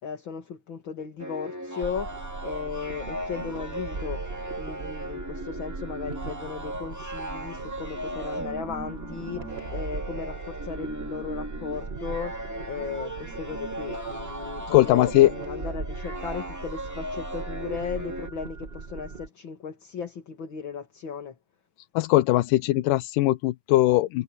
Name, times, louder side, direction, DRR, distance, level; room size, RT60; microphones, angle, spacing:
voice 1, 0.0-4.2 4.6-12.4 12.6-21.4, left 6 dB, 40° left, 2.4 m, -36 dB
sound 1, 1.2-18.3, right 1 dB, 5° right, 1.5 m, -37 dB
sound 2, 1.8-19.3, right 4 dB, 50° right, 0.7 m, -39 dB
voice 2, 14.7-15.3 22.0-24.2, left 16 dB, 90° left, 2.4 m, -20 dB
omnidirectional pair, 3.7 m